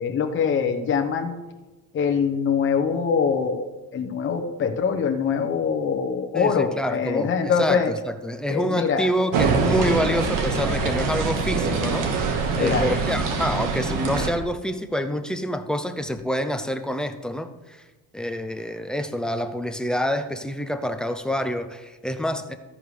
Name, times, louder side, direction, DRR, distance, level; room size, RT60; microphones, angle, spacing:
voice 1, 0.0-1.4 1.9-3.7 3.9-7.9 8.5-9.1 12.6-13.0, left 6 dB, 35° left, 4 dB, 1.0 m, -23 dB
voice 2, 6.3-17.8 18.1-22.5, equal, ahead, 7 dB, 0.5 m, -27 dB
sound 1, 9.3-14.3, right 4 dB, 75° right, 1.6 m, -24 dB
14.0 x 10.5 x 3.3 m, 1.2 s
cardioid pair, 160°, 33 cm